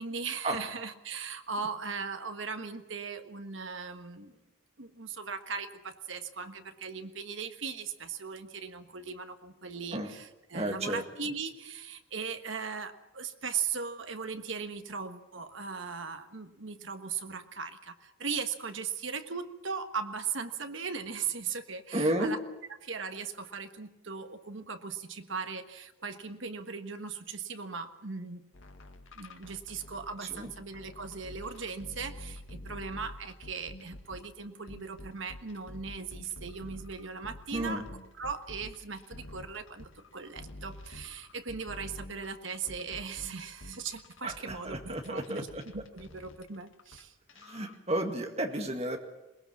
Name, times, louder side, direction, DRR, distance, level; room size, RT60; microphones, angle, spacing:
voice 1, 0.0-4.3 4.8-22.4 22.8-28.4 29.1-37.8 38.2-45.5 45.7-47.1, right 5 dB, 70° right, 8 dB, 1.4 m, -38 dB
voice 2, 10.5-11.0 21.9-22.4 30.2-30.5 37.5-37.8 44.2-45.6 47.4-49.0, right 1 dB, 30° right, 4 dB, 2.1 m, -32 dB
sound 1, 28.5-34.3 34.7-47.0 47.3-47.8, left 1 dB, 75° left, 1.8 m, -48 dB
21.5 x 20.0 x 7.3 m, 0.96 s
head